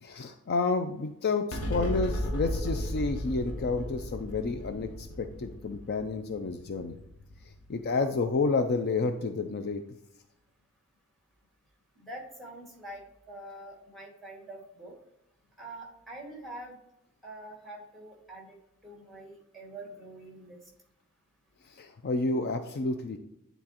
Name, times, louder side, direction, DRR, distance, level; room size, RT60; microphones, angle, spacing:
voice 1, 0.0-7.0 7.7-9.8 21.7-23.2, left 3 dB, 45° left, 7 dB, 0.4 m, -30 dB
sound 1, 1.5-8.2, equal, 80° left, 1.2 m, -35 dB
voice 2, 12.0-13.0 13.3-14.9 15.6-16.7 17.2-18.6 18.8-20.6, right 1 dB, ahead, -1 dB, 1.9 m, -45 dB
9.7 x 4.0 x 2.9 m, 0.81 s
head